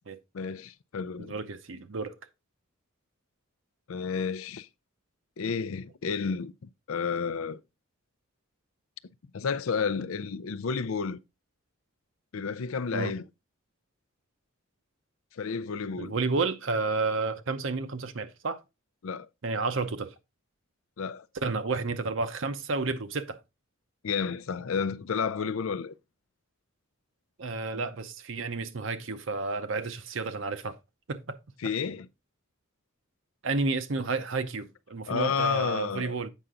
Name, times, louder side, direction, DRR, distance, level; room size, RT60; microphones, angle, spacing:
voice 1, 0.3-1.4 3.9-4.7 5.4-7.6 9.3-11.2 12.3-13.2 15.3-16.2 19.0-19.3 21.0-21.3 24.0-25.9 31.6-32.1 35.1-36.2, left 5 dB, 70° left, 0.5 m, -31 dB
voice 2, 1.2-2.1 12.9-13.1 16.0-18.6 19.4-20.1 21.4-23.4 27.4-30.8 31.1-31.4 33.4-36.3, right 3 dB, 60° right, 0.7 m, -31 dB
8.2 x 5.6 x 3.7 m
head